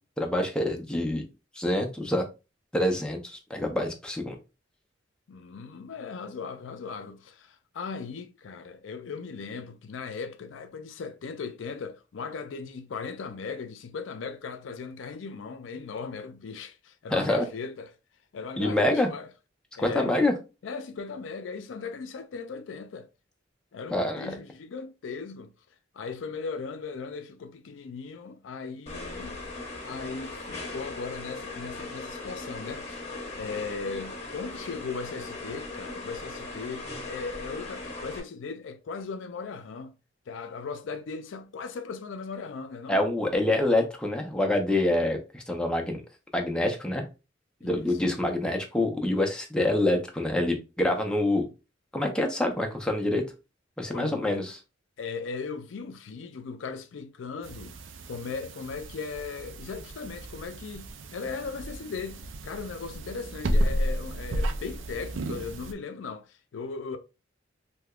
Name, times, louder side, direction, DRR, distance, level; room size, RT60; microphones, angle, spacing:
voice 1, 0.2-1.2 1.6-2.2 2.7-4.4 17.1-17.5 18.6-19.1 19.8-20.3 23.9-24.3 42.9-46.0 46.3-47.0 47.6-51.5 51.9-53.2 53.8-54.6, left 1 dB, 5° left, 0.6 m, -26 dB
voice 2, 5.3-17.9 18.3-19.3 19.8-20.2 20.6-23.1 23.7-25.5 25.9-29.4 29.8-39.9 40.3-43.0 47.6-47.9 53.9-54.4 55.0-57.8 58.1-67.0, left 5 dB, 80° left, 0.4 m, -38 dB
sound 1, 28.9-38.2, left 2 dB, 35° left, 0.9 m, -39 dB
sound 2, 57.4-65.7, equal, 85° right, 0.4 m, -32 dB
3.4 x 2.8 x 2.3 m
head